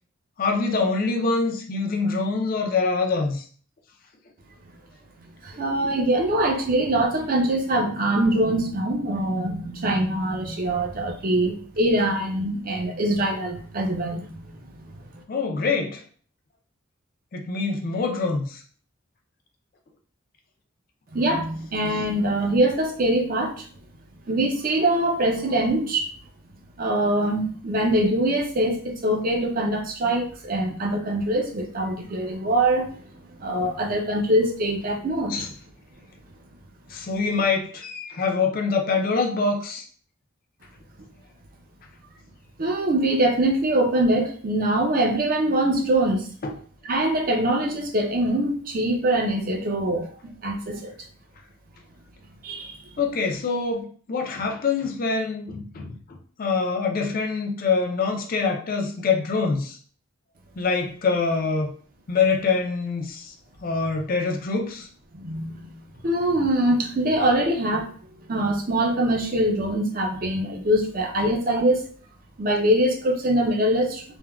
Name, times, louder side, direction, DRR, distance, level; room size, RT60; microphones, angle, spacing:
voice 1, 0.4-3.5 15.3-16.0 17.3-18.6 35.3-35.5 36.9-39.8 46.4-46.5 53.0-59.8 60.6-61.7 62.1-63.3 63.6-64.9 71.2-71.3, left 4 dB, 40° left, 3 dB, 0.4 m, -25 dB
voice 2, 5.4-14.5 14.8-14.9 21.1-23.7 24.3-26.1 26.8-32.9 33.4-35.3 42.6-46.3 46.9-50.1 50.4-50.9 52.4-52.8 65.1-67.9 68.3-71.9 72.4-74.2, right 1 dB, 45° right, 2 dB, 0.5 m, -23 dB
3.3 x 2.1 x 2.3 m, 0.44 s
head